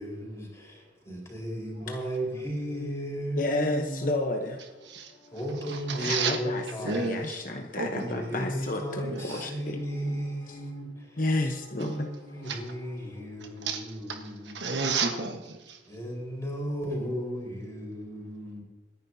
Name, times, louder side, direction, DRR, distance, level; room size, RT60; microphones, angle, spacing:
voice 1, 0.0-4.1 5.3-7.0 7.4-7.6 8.0-11.2 11.7-14.5 15.9-18.6, equal, 15° left, -2 dB, 4.6 m, -35 dB
voice 2, 1.9-2.2 3.4-4.6 5.2-5.4 6.0-9.8 10.5-10.6 11.2-12.1 12.5-13.0, left 2 dB, 45° left, 3 dB, 1.0 m, -32 dB
voice 3, 5.9-6.4 6.8-7.4 7.8-8.2 9.1-9.2 12.5-12.6 13.6-13.8 14.1-14.2 14.5-15.8, right 4 dB, 70° right, 4 dB, 1.4 m, -30 dB
26.5 x 10.5 x 2.8 m, 1.1 s
head